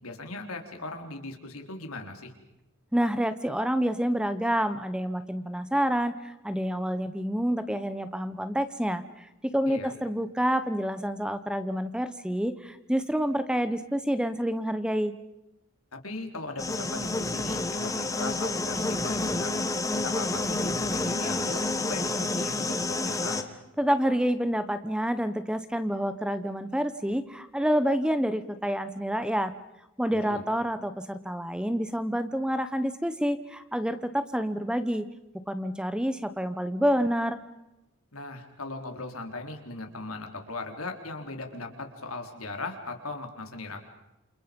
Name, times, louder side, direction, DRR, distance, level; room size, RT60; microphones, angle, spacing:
voice 1, 0.0-2.3 9.6-9.9 15.9-19.5 19.9-22.8 23.0-23.4 30.2-30.4 38.1-43.9, left 2 dB, 80° left, 4 dB, 4.1 m, -38 dB
voice 2, 2.9-9.3 9.5-15.1 23.8-29.5 30.0-35.0 35.5-37.4, equal, 5° right, 12 dB, 1.0 m, -28 dB
sound 1, 16.6-23.4, left 2 dB, 15° left, 1.4 m, -29 dB
28.5 x 28.5 x 5.3 m, 0.92 s
head